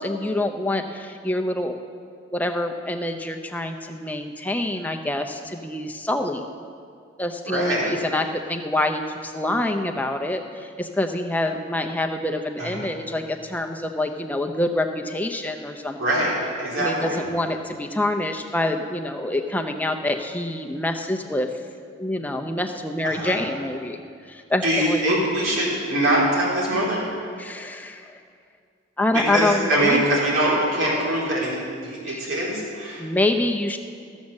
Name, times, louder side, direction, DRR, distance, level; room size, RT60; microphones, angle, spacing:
voice 1, 0.0-1.8 2.3-6.4 7.2-16.3 16.8-21.5 22.0-24.0 24.3-25.0 27.4-28.2 29.0-30.0 32.1-32.2 33.0-33.8, left 1 dB, 10° left, 4 dB, 0.5 m, -26 dB
voice 2, 7.5-7.9 12.6-12.8 16.0-16.3 16.6-17.2 23.0-23.4 24.6-27.0 29.1-33.1, right 1 dB, 85° right, -5 dB, 3.4 m, -23 dB
14.0 x 7.1 x 6.4 m, 2.2 s
head